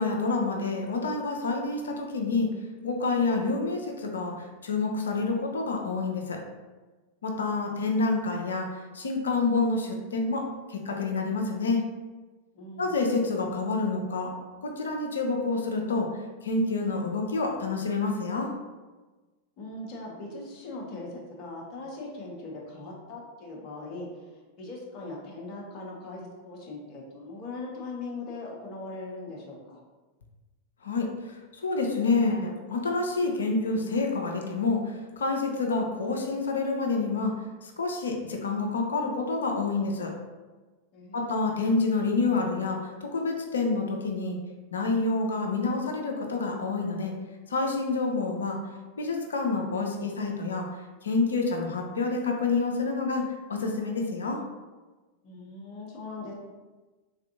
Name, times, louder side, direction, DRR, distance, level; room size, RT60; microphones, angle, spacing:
voice 1, 0.0-2.5 2.8-6.4 7.2-11.8 12.8-14.3 14.6-16.1 16.4-18.5 30.8-37.3 37.6-40.1 41.1-44.4 44.7-47.1 47.5-48.6 49.0-50.7 51.0-54.4, left 3 dB, 70° left, 2 dB, 0.4 m, -28 dB
voice 2, 12.5-12.9 19.6-29.8 40.9-41.5 55.2-56.3, left 2 dB, 40° left, -2 dB, 0.7 m, -40 dB
3.4 x 2.5 x 2.7 m, 1.2 s
figure-of-eight pair, 90°, 0 cm